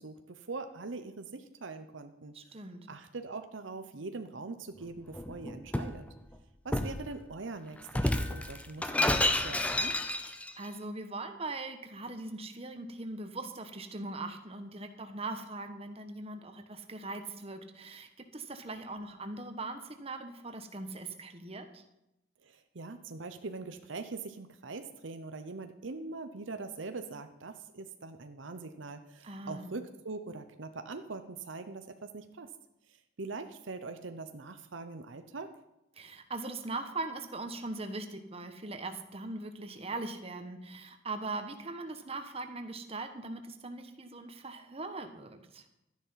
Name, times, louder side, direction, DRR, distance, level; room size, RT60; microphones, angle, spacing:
voice 1, 0.0-2.6 2.9-6.0 6.6-10.0 22.4-32.5 32.9-35.6, right 3 dB, 75° right, 8 dB, 0.8 m, -42 dB
voice 2, 2.3-2.9 10.3-21.8 29.2-29.7 35.9-45.6, right 2 dB, 30° right, 7 dB, 1.3 m, -40 dB
Shatter, 5.1-6.0 6.7-7.0 7.9-10.5, left 1 dB, 5° left, 0.7 m, -30 dB
13.0 x 10.5 x 5.7 m, 0.87 s
head